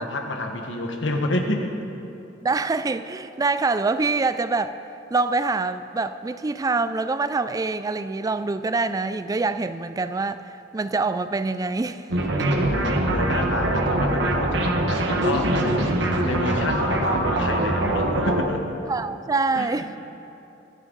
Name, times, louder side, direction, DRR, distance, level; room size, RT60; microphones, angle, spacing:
voice 1, 0.0-1.7 12.4-18.7 19.5-20.0, left 1 dB, 75° left, 3 dB, 1.5 m, -29 dB
voice 2, 2.4-4.8 5.1-12.1 12.4-12.5 18.9-19.9, right 3 dB, 20° right, 12 dB, 0.3 m, -25 dB
sound 1, 12.1-18.4, right 1 dB, 65° right, 1.3 m, -23 dB
23.5 x 9.9 x 4.0 m, 2.8 s
head